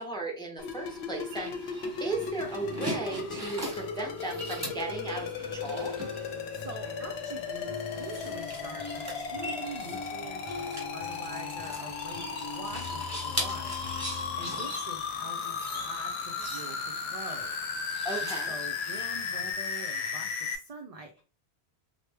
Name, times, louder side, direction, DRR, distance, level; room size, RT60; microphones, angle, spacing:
voice 1, 0.0-6.0 14.5-14.6 18.0-18.5, right 2 dB, 5° left, 1 dB, 0.5 m, -36 dB
sound 1, 0.6-20.6, left 6 dB, 75° left, 0.8 m, -36 dB
sound 2, 0.9-19.5, right 1 dB, 15° right, 1.1 m, -42 dB
sound 3, 2.1-14.6, left 3 dB, 40° left, 0.9 m, -44 dB
voice 2, 6.5-17.6 17.9-21.2, right 2 dB, 55° right, 3 dB, 0.4 m, -45 dB
3.2 x 2.1 x 3.3 m, 0.36 s
omnidirectional pair, 1.1 m